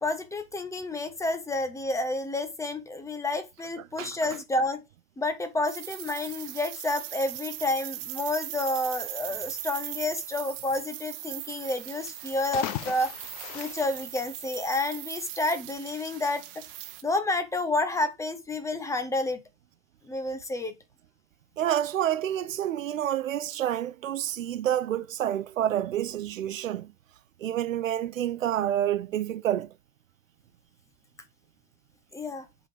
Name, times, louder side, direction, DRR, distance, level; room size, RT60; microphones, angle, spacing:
voice 1, 0.0-4.8 5.2-13.1 13.5-16.5 17.0-19.4 20.1-20.7 32.1-32.5, left 2 dB, 5° left, 0.8 m, -30 dB
sound 1, 5.7-17.0, right 14 dB, 45° right, 1.0 m, -39 dB
sound 2, 12.3-14.9, left 15 dB, 30° left, 0.4 m, -38 dB
voice 2, 21.6-26.9 27.4-29.7, right 11 dB, 70° right, 0.6 m, -28 dB
7.6 x 4.0 x 4.7 m
figure-of-eight pair, 100°, 41 cm